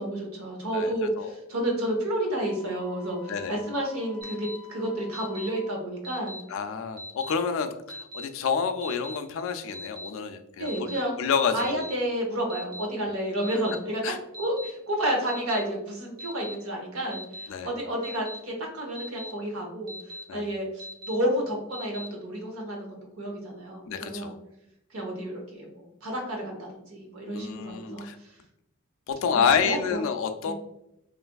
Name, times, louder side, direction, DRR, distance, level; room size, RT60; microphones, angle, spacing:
voice 1, 0.0-6.3 10.6-11.1 11.5-14.0 14.4-24.3 24.9-28.4 29.3-30.1 30.4-30.5, right 1 dB, 85° right, 1 dB, 0.9 m, -31 dB
voice 2, 0.7-1.3 3.3-3.6 6.5-10.7 11.2-11.9 14.0-14.2 17.5-17.7 20.3-20.5 23.9-24.4 27.3-28.2 29.1-30.5, left 6 dB, 65° left, 8 dB, 0.4 m, -28 dB
Wind instrument woodwind instrument, 2.3-5.9, left 5 dB, 30° right, 1.0 m, -50 dB
Alarm, 4.2-4.6 5.1-5.5 6.0-6.4 7.0-7.3 7.9-8.2 8.8-9.2 9.7-10.1 10.7-11.0 11.6-11.9 12.5-12.9 13.4-13.8 14.3-14.7 15.3-15.6 16.2-16.5 17.1-17.5 18.0-18.4 18.9-19.3 19.9-20.2 20.8-21.2 21.7-22.1, equal, 45° right, 0.6 m, -40 dB
3.2 x 2.5 x 2.2 m, 0.82 s
head